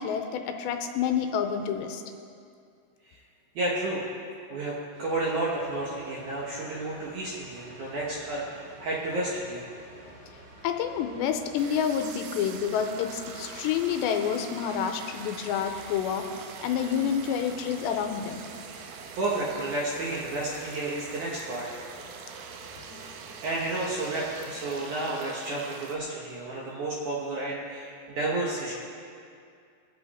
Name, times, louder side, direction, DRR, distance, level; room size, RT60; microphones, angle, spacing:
voice 1, 0.0-2.0 10.6-16.3 16.6-18.4 22.9-23.1, left 8 dB, 80° left, 6 dB, 2.8 m, -28 dB
voice 2, 3.6-4.0 4.5-9.7 18.7-21.7 23.0-23.1 23.4-28.7, right 2 dB, 65° right, -4 dB, 1.9 m, -31 dB
sound 1, 4.9-24.8, right 2 dB, 45° right, 4.0 m, -50 dB
sound 2, 11.6-26.0, right 6 dB, 85° right, 2.1 m, -44 dB
22.0 x 8.0 x 4.2 m, 2.3 s
omnidirectional pair, 5.2 m